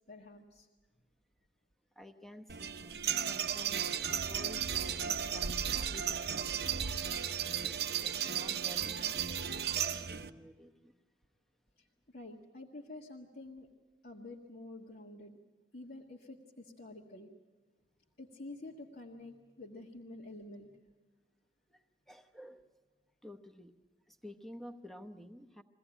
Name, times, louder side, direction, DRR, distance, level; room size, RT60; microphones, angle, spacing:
voice 1, 0.1-0.7 12.1-13.7 14.0-15.4 15.7-17.3 18.2-20.7, left 2 dB, 55° left, -2 dB, 1.7 m, -49 dB
voice 2, 2.0-6.9 7.5-11.0 21.7-22.6 23.2-23.7 24.1-25.6, left 1 dB, ahead, 6 dB, 0.9 m, -52 dB
sound 1, 2.5-10.3, right 8 dB, 65° right, 0.7 m, -35 dB
23.0 x 16.5 x 9.0 m, 1.3 s
head